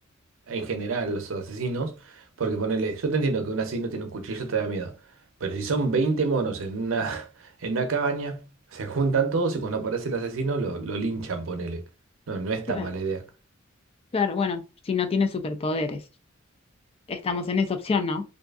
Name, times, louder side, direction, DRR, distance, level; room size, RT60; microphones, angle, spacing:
voice 1, 0.5-4.9 5.4-7.3 7.6-8.4 8.7-11.8 12.3-13.2, right 4 dB, 80° right, 0.5 m, -27 dB
voice 2, 14.1-14.6 14.9-16.0 17.1-18.2, left 4 dB, 30° left, 0.3 m, -26 dB
2.6 x 2.4 x 2.3 m
head